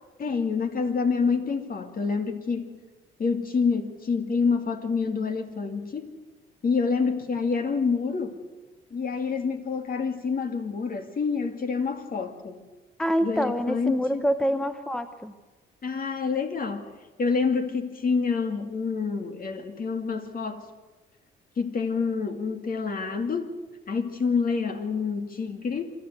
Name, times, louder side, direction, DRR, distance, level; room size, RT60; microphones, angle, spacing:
voice 1, 0.2-2.8 3.2-6.1 6.6-8.4 8.9-12.6 13.2-14.3 15.8-16.9 17.2-20.7 21.6-23.5 23.9-25.9, left 5 dB, 45° left, 6 dB, 2.5 m, -27 dB
voice 2, 13.0-15.3, equal, 5° left, 10 dB, 0.9 m, -26 dB
26.0 x 13.0 x 8.2 m, 1.2 s
cardioid pair, 90°, 20 cm